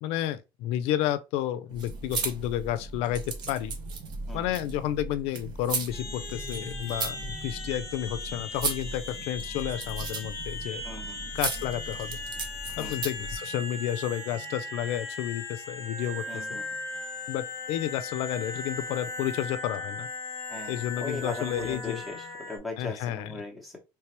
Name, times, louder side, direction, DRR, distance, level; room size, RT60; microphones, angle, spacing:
voice 1, 0.0-3.7 4.3-10.8 11.3-12.2 12.8-16.6 17.3-20.1 20.7-22.0 22.8-23.3, left 12 dB, 85° left, 0.4 m, -31 dB
sound 1, 1.7-13.3, right 4 dB, 50° right, 0.9 m, -36 dB
voice 2, 4.3-4.6 10.8-11.3 12.8-12.9 16.3-16.7 20.5-23.8, left 2 dB, ahead, 1.0 m, -39 dB
sound 2, 5.9-22.6, left 2 dB, 30° left, 1.0 m, -38 dB
3.3 x 3.1 x 3.0 m
cardioid pair, 165°, 10 cm